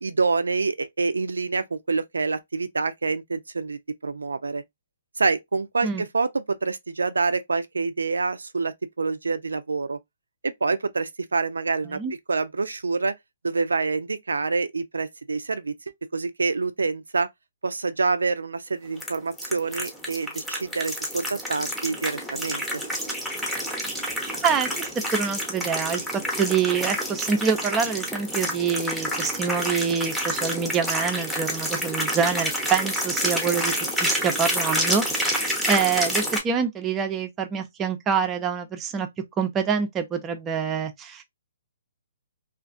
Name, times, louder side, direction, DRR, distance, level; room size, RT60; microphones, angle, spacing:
voice 1, 0.0-4.6 5.2-10.0 10.4-12.0 12.3-13.1 13.4-15.8 16.1-17.3 17.6-22.8, right 4 dB, 85° right, 0.3 m, -27 dB
sound 1, 19.0-36.4, equal, 5° left, 0.8 m, -28 dB
voice 2, 24.4-26.0 26.4-33.7 34.0-39.1 39.4-41.2, right 6 dB, 20° right, 0.5 m, -26 dB
2.5 x 2.4 x 2.4 m
hypercardioid pair, 140°, 0 cm